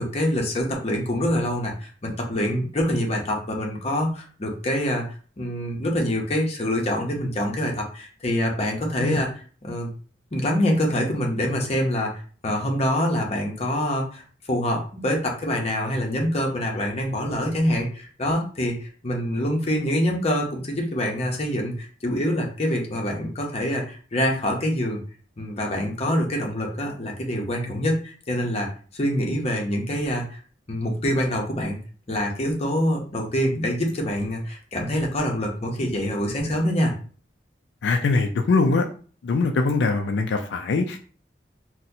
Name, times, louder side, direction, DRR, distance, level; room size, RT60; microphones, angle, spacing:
voice 1, 0.0-5.0 5.4-9.9 10.3-14.2 14.5-25.0 25.4-28.7 28.9-30.4 30.7-31.8 32.1-36.9, equal, 35° left, 0 dB, 0.8 m, -25 dB
voice 2, 37.8-38.9 39.2-41.0, left 3 dB, 80° left, 4 dB, 0.4 m, -22 dB
4.1 x 2.1 x 2.7 m, 0.41 s
head